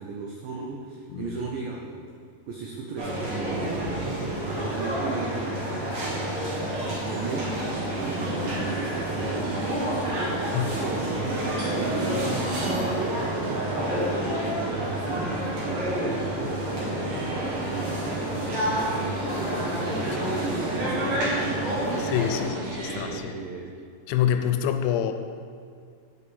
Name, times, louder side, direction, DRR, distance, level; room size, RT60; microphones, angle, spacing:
voice 1, 0.0-2.0 2.5-7.6 7.9-10.2 10.6-18.3 18.7-22.6 22.9-23.8, right 3 dB, 85° right, -1 dB, 2.0 m, -37 dB
sound 1, 3.0-22.5, right 1 dB, 55° right, 2.4 m, -29 dB
sound 2, 7.3-23.2, right 2 dB, 70° right, 1.5 m, -36 dB
voice 2, 22.0-23.4 24.1-25.1, left 9 dB, 85° left, 7 dB, 2.6 m, -26 dB
9.9 x 5.4 x 4.1 m, 2.1 s
omnidirectional pair, 4.8 m